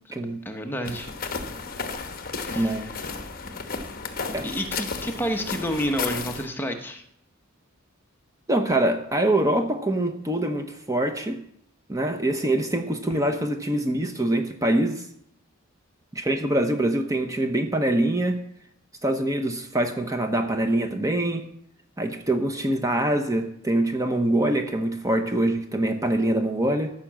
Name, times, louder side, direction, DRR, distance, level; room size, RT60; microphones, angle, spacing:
voice 1, 0.4-1.1 2.4-3.0 4.4-7.0, equal, 10° left, 4 dB, 1.0 m, -30 dB
sound 1, 0.9-6.5, left 4 dB, 45° left, 1.1 m, -33 dB
voice 2, 2.5-2.9 4.3-4.5 8.5-11.4 11.9-15.1 16.1-18.4 19.0-21.4 22.0-26.9, right 1 dB, 15° right, 6 dB, 0.9 m, -24 dB
14.0 x 6.0 x 7.4 m, 0.73 s
head